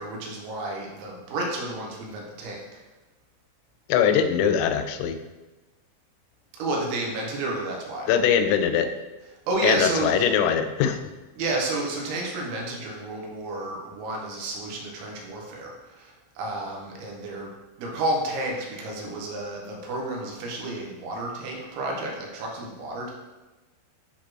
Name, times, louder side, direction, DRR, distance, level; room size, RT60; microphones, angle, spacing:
voice 1, 0.0-2.6 6.5-8.1 9.5-10.2 11.4-17.5 17.8-23.1, right 2 dB, 80° right, -1 dB, 3.3 m, -31 dB
voice 2, 3.9-5.2 8.1-8.9 9.6-11.0, left 8 dB, 90° left, 9 dB, 3.0 m, -22 dB
9.7 x 4.2 x 3.0 m, 1.1 s
omnidirectional pair, 5.5 m